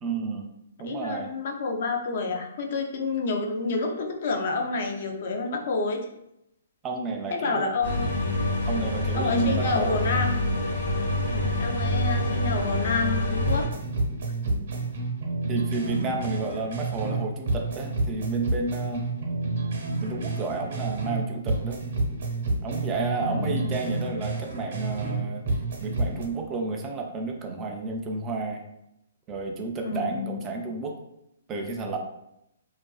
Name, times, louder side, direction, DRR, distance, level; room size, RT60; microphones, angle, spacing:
voice 1, 0.0-0.5 0.8-1.3 6.8-7.7 8.7-10.2 14.4-14.8 15.5-19.1 20.0-21.8 22.6-25.4 25.8-28.6 29.3-31.0 31.5-32.0, right 3 dB, 20° right, 2 dB, 0.3 m, -31 dB
voice 2, 0.8-6.1 7.3-8.1 9.1-10.4 11.3-13.7 15.8-16.5 23.3-23.7 29.8-30.4, left 3 dB, 55° left, 3 dB, 0.4 m, -29 dB
sound 1, 7.8-13.7, left 1 dB, 75° left, 1.0 m, -26 dB
sound 2, 13.5-17.2 17.5-21.2 21.5-25.2 25.5-26.3, right 2 dB, 65° right, 0.7 m, -29 dB
2.4 x 2.3 x 2.3 m, 0.81 s
hypercardioid pair, 145°, 0 cm